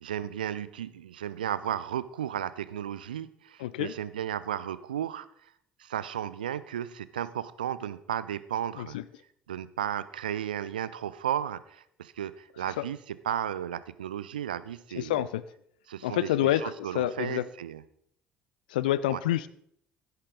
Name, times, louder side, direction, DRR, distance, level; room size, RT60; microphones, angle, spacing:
voice 1, 0.0-5.3 5.8-9.0 9.5-15.2 15.9-17.8 19.1-19.2, right 10 dB, 75° right, 16 dB, 0.4 m, -34 dB
voice 2, 3.6-3.9 8.8-9.0 12.8-12.9 15.0-15.4 16.0-17.4 18.7-19.5, left 13 dB, 70° left, 17 dB, 0.4 m, -28 dB
15.5 x 8.2 x 4.0 m, 0.69 s
figure-of-eight pair, 50°, 5 cm